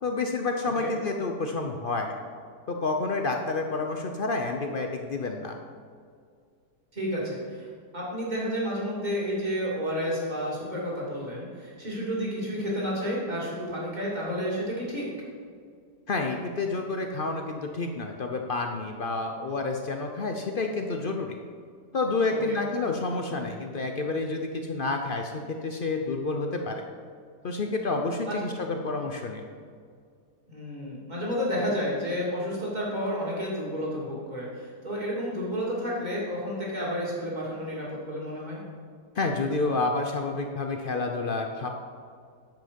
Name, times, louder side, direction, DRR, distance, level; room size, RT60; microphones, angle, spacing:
voice 1, 0.0-2.2 2.7-5.6 16.1-21.4 21.9-26.8 27.4-29.4 39.2-41.7, left 3 dB, 70° left, 3 dB, 0.5 m, -29 dB
voice 2, 0.6-0.9 6.9-15.1 22.3-22.6 28.3-28.4 30.5-38.6, equal, 25° right, -5 dB, 2.8 m, -31 dB
10.5 x 7.8 x 5.2 m, 2.2 s
omnidirectional pair, 1.9 m